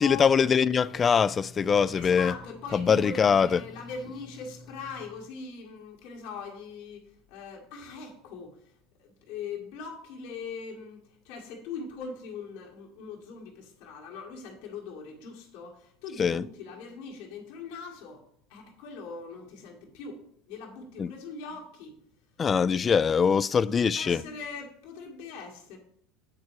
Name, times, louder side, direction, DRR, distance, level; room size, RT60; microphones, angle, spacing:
voice 1, 0.0-2.3 2.7-3.6 16.2-16.4 21.0-21.1 22.4-24.2, left 6 dB, 30° left, 0.3 m, -23 dB
voice 2, 1.9-18.2 18.5-22.0 23.6-25.8, left 5 dB, 65° left, 1.8 m, -41 dB
8.6 x 4.6 x 4.7 m
hypercardioid pair, 75°, 0 cm